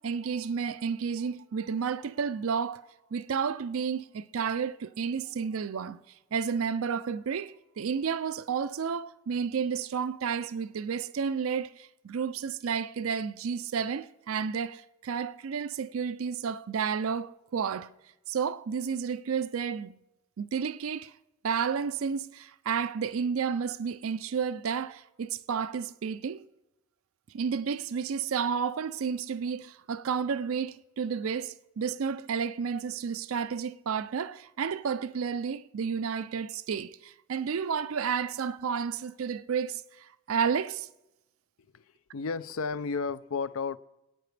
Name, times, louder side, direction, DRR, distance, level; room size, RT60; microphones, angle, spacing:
voice 1, 0.0-6.0 6.3-17.9 18.3-20.0 20.4-21.1 21.4-26.5 27.3-40.9, right 6 dB, 80° right, 0.4 m, -31 dB
voice 2, 42.1-43.8, left 5 dB, 80° left, 0.5 m, -32 dB
26.5 x 9.3 x 3.3 m
head